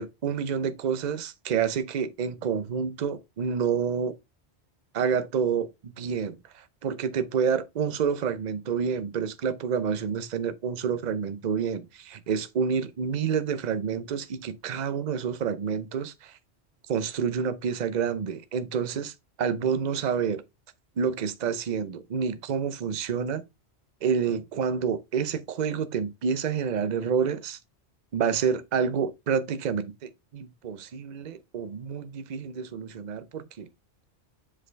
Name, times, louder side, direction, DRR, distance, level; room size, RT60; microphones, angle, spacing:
voice 1, 0.0-4.1 4.9-16.4 16.9-20.4 21.0-23.4 24.0-27.6 28.1-33.7, right 6 dB, 45° right, 0.7 m, -28 dB
6.5 x 5.0 x 3.2 m
omnidirectional pair, 1.1 m